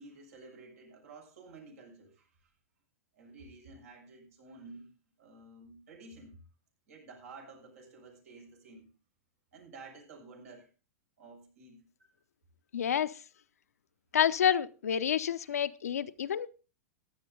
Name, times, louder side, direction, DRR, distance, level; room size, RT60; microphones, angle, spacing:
voice 1, 0.0-2.5 3.1-4.9 5.2-6.4 6.9-8.9 9.5-10.7 11.2-11.8 15.5-15.6, right 3 dB, 70° right, 6.9 m, -52 dB
voice 2, 12.7-13.1 14.1-16.5, left 9 dB, 85° left, 0.8 m, -28 dB
15.0 x 11.0 x 3.8 m
hypercardioid pair, 115°, 8 cm